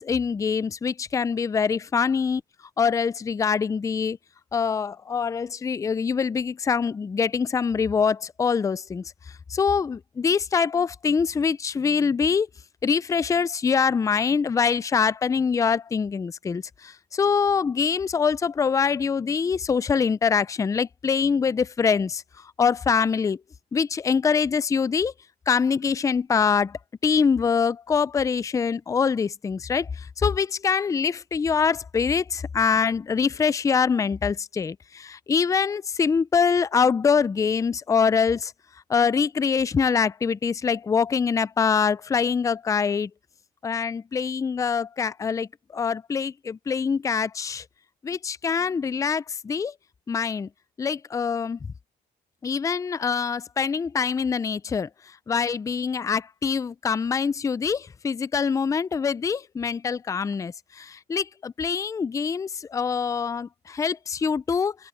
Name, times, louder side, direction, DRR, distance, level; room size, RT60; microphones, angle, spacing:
voice 1, 0.0-2.4 2.8-4.2 4.5-9.0 9.5-12.5 12.8-22.2 22.6-23.4 23.7-25.1 25.5-38.5 38.9-43.1 43.6-47.6 48.0-49.7 50.1-50.5 50.8-51.6 52.4-54.9 55.3-64.7, left 6 dB, 20° left, 0.4 m, -24 dB
cardioid pair, 110°, 17 cm